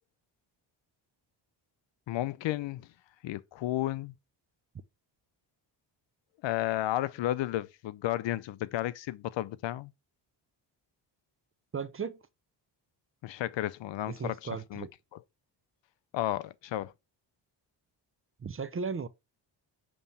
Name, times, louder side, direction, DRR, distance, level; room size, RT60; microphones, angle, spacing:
voice 1, 2.1-2.9 3.2-4.1 6.4-9.9 13.2-14.9 15.1-15.2 16.1-16.9, left 14 dB, 75° left, 0.6 m, -33 dB
voice 2, 11.7-12.2 14.1-14.9 18.4-19.1, right 5 dB, 30° right, 0.6 m, -36 dB
6.9 x 3.1 x 5.5 m
cardioid pair, 80°, 45 cm